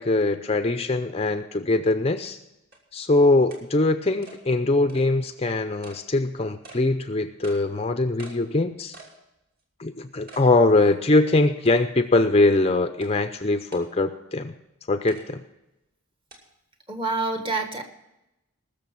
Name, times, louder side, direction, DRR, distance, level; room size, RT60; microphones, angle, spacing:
voice 1, 0.0-2.4 2.9-8.9 9.8-14.5 14.9-15.4, left 2 dB, 25° left, 9 dB, 0.5 m, -22 dB
sound 1, 1.5-1.6 2.2-2.3 2.7-2.8 3.5-3.6 4.2-4.4 4.9-5.1 5.8-6.0 6.6-6.8 7.4-7.6 8.2-8.4 8.9-9.2 9.6-9.7 10.3-10.5 10.9-11.0 11.7-12.0 13.0-13.1 13.7-13.9 15.1-15.2 16.3-16.4, right 3 dB, 40° right, 2.7 m, -46 dB
voice 2, 16.9-17.8, right 3 dB, 25° right, 5 dB, 1.5 m, -27 dB
20.0 x 6.8 x 5.8 m, 0.92 s
head